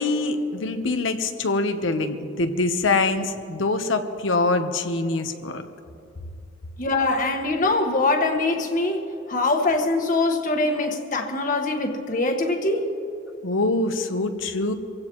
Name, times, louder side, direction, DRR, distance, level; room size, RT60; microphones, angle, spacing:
voice 1, 0.0-5.6 13.4-14.7, left 2 dB, 85° left, 1.1 m, -24 dB
voice 2, 6.8-12.9, left 2 dB, 45° left, 1.5 m, -23 dB
25.5 x 16.5 x 3.1 m
head